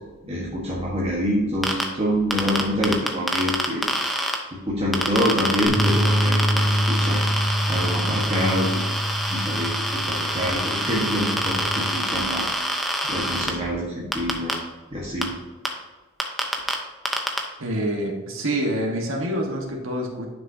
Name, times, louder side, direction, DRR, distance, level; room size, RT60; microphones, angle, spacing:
voice 1, 0.2-3.8 4.5-7.2 7.7-8.9 9.3-14.6 14.9-15.3, equal, 30° right, -5 dB, 1.3 m, -26 dB
sound 1, 1.6-1.8 2.3-4.3 4.9-13.5 14.1-14.5 15.2-15.3 15.6-15.7 16.2-16.7 17.1-17.4, equal, ahead, 0.8 m, -26 dB
sound 2, 5.6-11.9, equal, 40° left, 2.6 m, -25 dB
voice 2, 17.6-20.3, right 1 dB, 75° right, 0 dB, 1.4 m, -26 dB
10.5 x 6.2 x 2.8 m, 1.2 s
head